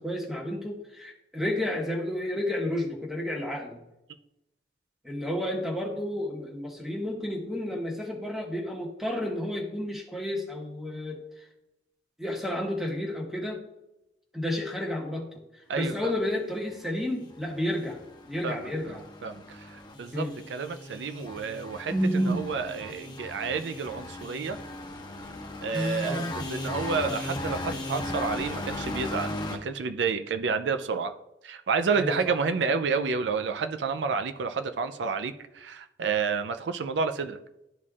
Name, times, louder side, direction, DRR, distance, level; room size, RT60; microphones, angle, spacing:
voice 1, 0.0-3.8 5.0-11.5 12.2-13.7 14.3-15.3 15.5-18.0 18.2-19.0 20.1-20.3 21.9-22.5 26.0-26.3 31.9-32.2, left 1 dB, ahead, -1 dB, 1.3 m, -31 dB
voice 2, 15.7-16.1 18.4-18.6 18.8-18.9 19.2-20.2 20.5-21.9 22.3-24.6 25.6-31.1 31.4-37.4, right 5 dB, 90° right, 8 dB, 0.4 m, -30 dB
sound 1, 17.2-29.6, left 1 dB, 25° left, 1.2 m, -37 dB
12.5 x 4.2 x 2.4 m, 0.89 s
head